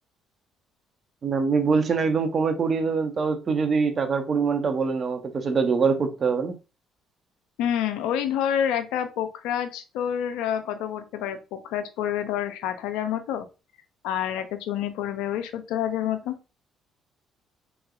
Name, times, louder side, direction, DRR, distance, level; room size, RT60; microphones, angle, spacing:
voice 1, 1.2-6.5, right 5 dB, 45° right, 0.7 m, -24 dB
voice 2, 7.6-13.5 14.0-16.3, left 10 dB, 85° left, 0.4 m, -28 dB
3.3 x 3.1 x 2.3 m
supercardioid pair, 70°, 0 cm